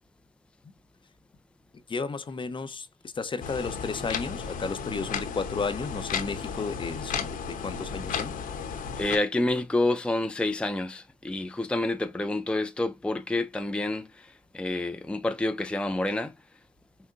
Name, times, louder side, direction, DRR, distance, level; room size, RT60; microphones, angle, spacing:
voice 1, 1.9-8.3, left 4 dB, 35° left, 0.8 m, -33 dB
sound 1, 3.4-9.2, left 6 dB, 65° left, 1.1 m, -34 dB
voice 2, 9.0-16.3, left 2 dB, 5° left, 0.5 m, -28 dB
5.8 x 2.1 x 2.6 m
supercardioid pair, 70°, 15 cm